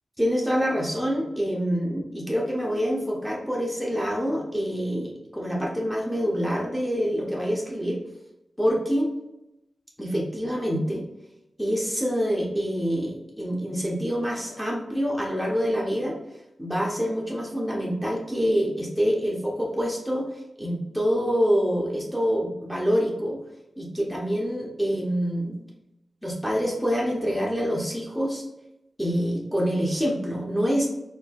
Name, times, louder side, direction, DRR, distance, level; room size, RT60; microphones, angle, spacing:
voice 1, 0.2-8.0 8.6-9.1 10.0-11.0 11.6-16.2 16.6-20.3 20.6-23.4 23.8-25.6 26.2-28.4 29.0-30.9, equal, 5° left, -4 dB, 0.8 m, -26 dB
4.2 x 2.7 x 2.4 m, 0.90 s
wide cardioid pair, 130°, 0 cm